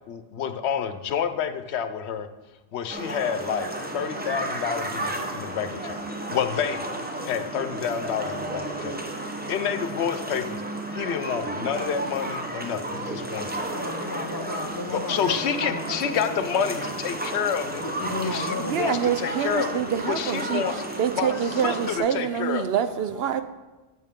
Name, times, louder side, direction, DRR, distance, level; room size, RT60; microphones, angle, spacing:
voice 1, 0.1-2.3 2.7-6.0 6.3-6.8 7.2-9.0 9.5-10.6 10.9-13.6 14.9-17.8 18.2-19.8 20.1-20.8 21.1-22.7, left 7 dB, 85° left, 10 dB, 0.9 m, -29 dB
sound 1, 2.9-22.0, right 1 dB, 10° right, 0.7 m, -33 dB
sound 2, 3.5-20.4, equal, 85° right, 4.1 m, -46 dB
voice 2, 13.6-15.7 16.1-16.4 16.8-16.9 17.3-19.2 23.3-23.4, left 2 dB, 25° left, 6 dB, 0.5 m, -35 dB
voice 3, 18.6-20.6 21.0-23.4, right 8 dB, 70° right, 11 dB, 0.8 m, -26 dB
12.0 x 6.4 x 3.6 m, 1.1 s
omnidirectional pair, 1.1 m